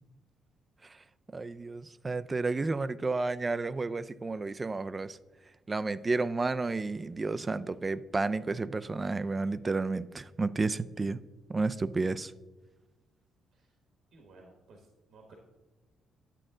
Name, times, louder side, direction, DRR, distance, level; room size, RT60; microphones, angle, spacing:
voice 1, 1.3-5.2 5.7-11.2 11.5-12.3, right 3 dB, 25° right, 0.4 m, -31 dB
voice 2, 14.1-15.4, right 3 dB, 75° right, 1.4 m, -56 dB
9.9 x 7.5 x 3.8 m
cardioid pair, 90°, 0 cm